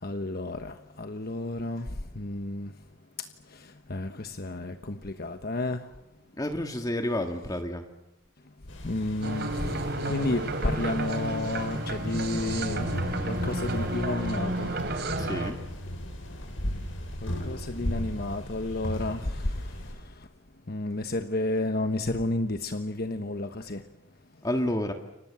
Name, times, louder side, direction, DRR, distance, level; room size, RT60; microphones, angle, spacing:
voice 1, 0.0-2.7 3.2-5.9 8.8-12.9 13.2-14.7 17.2-20.3 20.7-23.9, left 2 dB, 50° left, 1.2 m, -32 dB
voice 2, 6.4-7.8 15.2-15.6 24.4-24.9, left 1 dB, 20° left, 1.8 m, -29 dB
sound 1, 8.7-19.9, equal, 85° left, 7.8 m, -36 dB
sound 2, 9.2-15.5, right 1 dB, 55° right, 3.4 m, -31 dB
29.5 x 25.5 x 7.4 m
head